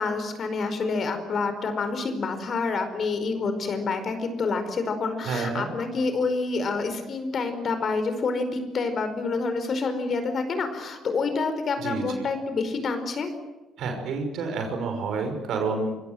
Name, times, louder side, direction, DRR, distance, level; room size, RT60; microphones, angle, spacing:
voice 1, 0.0-13.3, left 4 dB, 45° left, 9 dB, 4.9 m, -28 dB
voice 2, 5.2-5.7 11.8-12.3 13.8-16.0, right 4 dB, 55° right, 5 dB, 5.8 m, -29 dB
26.0 x 25.0 x 7.9 m, 1.1 s
figure-of-eight pair, 45°, 0 cm